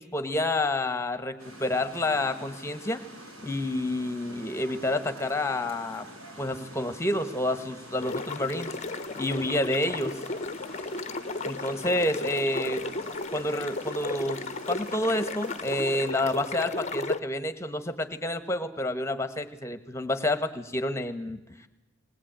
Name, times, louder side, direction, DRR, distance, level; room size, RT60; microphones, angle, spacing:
voice 1, 0.0-3.0 3.4-6.1 6.4-8.7 9.2-10.2 11.4-12.8 13.3-14.4 14.7-21.4, left 1 dB, 15° left, 10 dB, 1.3 m, -29 dB
sound 1, 1.4-16.1, equal, 85° right, 6.8 m, -46 dB
sound 2, 8.0-17.2, left 3 dB, 35° left, 0.7 m, -34 dB
20.5 x 19.5 x 9.0 m, 0.98 s
head